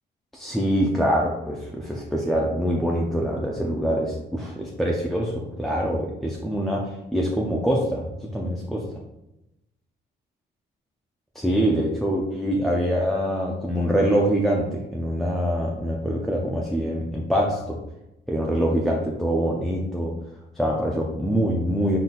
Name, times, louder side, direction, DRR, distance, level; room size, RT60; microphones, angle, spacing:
voice 1, 0.3-8.8 11.3-17.8 18.3-20.1 20.6-22.0, equal, ahead, -2 dB, 0.5 m, -24 dB
3.9 x 3.8 x 2.5 m, 0.91 s
cardioid pair, 90°, 20 cm